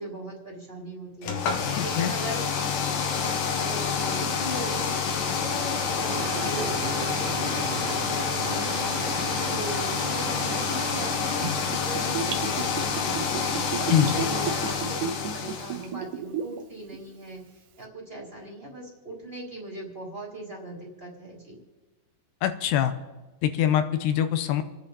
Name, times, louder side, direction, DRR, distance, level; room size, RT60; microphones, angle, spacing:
voice 1, 0.0-1.4 1.8-2.4 3.1-5.0 5.4-9.0 9.5-11.5 11.8-21.6, right 2 dB, 15° right, -1 dB, 3.1 m, -39 dB
The sound produced by a hands dryer, 1.2-15.9, left 6 dB, 60° left, 2.6 m, -28 dB
voice 2, 1.7-2.1 13.9-14.1 22.4-22.9 23.4-24.6, left 10 dB, 75° left, 10 dB, 2.7 m, -23 dB
sound 1, 6.1-11.8, right 12 dB, 85° right, 2.1 m, -37 dB
Gurgling / Bathtub (filling or washing), 11.4-16.6 16.9-17.0, right 7 dB, 70° right, 2.1 m, -32 dB
29.5 x 10.0 x 4.2 m, 1.2 s
omnidirectional pair, 5.1 m